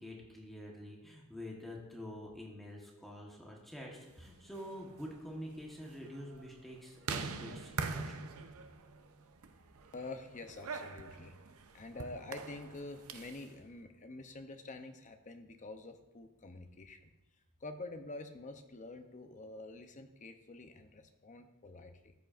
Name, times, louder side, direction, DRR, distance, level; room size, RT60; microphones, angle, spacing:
voice 1, 0.0-8.1, equal, ahead, -2 dB, 1.3 m, -47 dB
sound 1, 4.4-13.5, right 4 dB, 70° right, 0.7 m, -44 dB
voice 2, 9.9-11.3 11.7-17.1 17.6-22.1, left 2 dB, 35° left, 7 dB, 0.7 m, -47 dB
13.5 x 8.2 x 2.6 m, 0.98 s
head